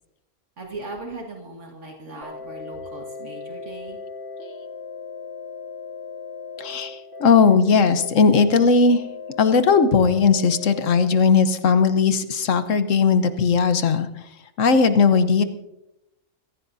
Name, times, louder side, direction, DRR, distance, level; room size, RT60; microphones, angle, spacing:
voice 1, 0.6-4.0, right 2 dB, 70° right, 0 dB, 2.1 m, -38 dB
sound 1, 2.2-11.0, left 4 dB, 55° right, 2.5 m, -37 dB
voice 2, 6.6-9.0 9.4-14.1 14.6-15.4, left 5 dB, 80° left, 10 dB, 1.3 m, -18 dB
25.0 x 15.0 x 2.7 m, 0.88 s
omnidirectional pair, 1.3 m